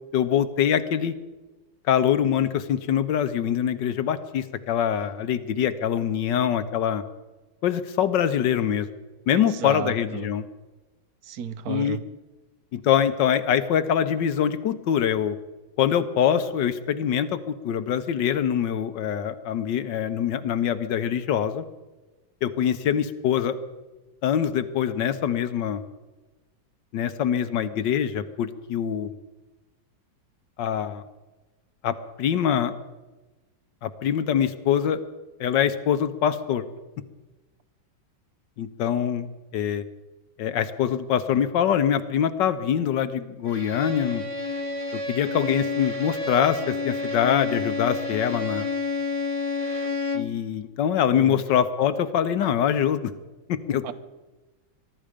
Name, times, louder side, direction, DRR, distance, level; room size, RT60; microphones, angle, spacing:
voice 1, 0.1-1.1 1.9-7.0 7.6-8.9 9.3-10.5 11.7-12.0 12.7-15.4 15.8-21.6 22.4-23.6 24.2-25.8 26.9-29.1 30.6-31.0 31.8-32.7 33.8-35.0 35.4-36.6 38.6-39.3 39.5-39.8 40.4-44.2 44.9-48.7 50.1-53.1 53.5-53.9, left 9 dB, 70° left, 12 dB, 1.4 m, -24 dB
voice 2, 9.3-10.3 11.2-12.0 51.1-51.4 53.8-53.9, right 9 dB, 60° right, 14 dB, 1.1 m, -33 dB
Bowed string instrument, 43.5-50.4, left 3 dB, 25° right, 0.9 m, -30 dB
22.5 x 12.5 x 5.1 m, 1.2 s
omnidirectional pair, 2.2 m